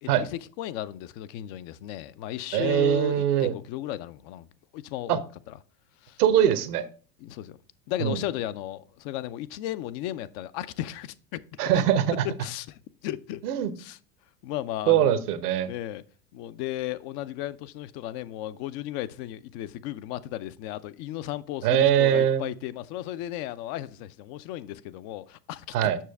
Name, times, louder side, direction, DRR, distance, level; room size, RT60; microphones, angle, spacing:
voice 1, 0.0-4.5 4.7-5.2 5.5-5.6 6.0-6.2 7.2-7.6 7.9-11.4 12.4-13.4 13.8-14.0 14.4-15.1 15.6-16.0 16.3-25.8, left 13 dB, 45° left, 0.6 m, -35 dB
voice 2, 2.5-3.5 5.1-5.2 6.2-6.8 8.0-8.2 11.6-12.1 13.4-13.7 14.9-15.7 21.6-22.4 25.7-26.0, right 10 dB, 70° right, 1.1 m, -22 dB
7.4 x 6.2 x 3.4 m
hypercardioid pair, 85°, 48 cm